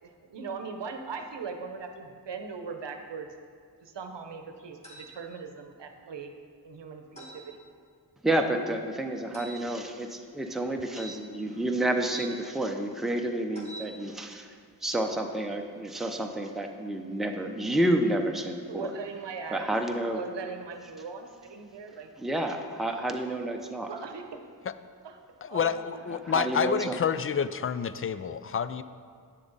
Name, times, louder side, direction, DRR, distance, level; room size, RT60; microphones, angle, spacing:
voice 1, 0.0-3.3 3.8-6.3 6.6-7.6 18.7-19.8 20.1-22.1 23.8-24.4 25.0-25.2 25.5-25.8, right 5 dB, 75° right, 6 dB, 0.9 m, -39 dB
sound 1, 4.8-5.1 7.2-7.4 9.3-9.6 10.9-12.3 13.5-13.9, right 1 dB, 15° left, 2.2 m, -45 dB
voice 2, 8.2-14.5 14.8-18.9 19.5-20.2 22.2-23.9 26.3-26.9, right 1 dB, ahead, 3 dB, 0.7 m, -29 dB
voice 3, 25.4-28.8, left 7 dB, 35° left, 13 dB, 0.4 m, -28 dB
9.3 x 6.9 x 4.0 m, 2.2 s
cardioid pair, 50°, 44 cm